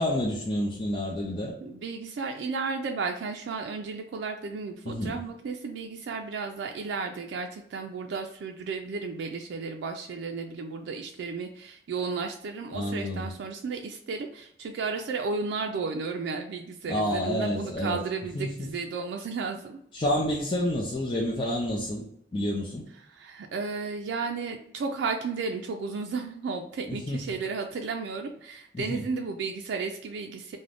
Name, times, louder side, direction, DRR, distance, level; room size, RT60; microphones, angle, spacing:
voice 1, 0.0-1.5 4.8-5.2 12.7-13.3 16.9-18.0 18.3-18.7 19.9-22.0 22.3-22.9 26.9-27.4 28.7-29.1, left 1 dB, 25° left, -4 dB, 0.4 m, -29 dB
voice 2, 1.6-19.8 23.1-30.6, right 4 dB, 85° right, 3 dB, 0.3 m, -33 dB
2.5 x 2.1 x 3.3 m, 0.71 s
head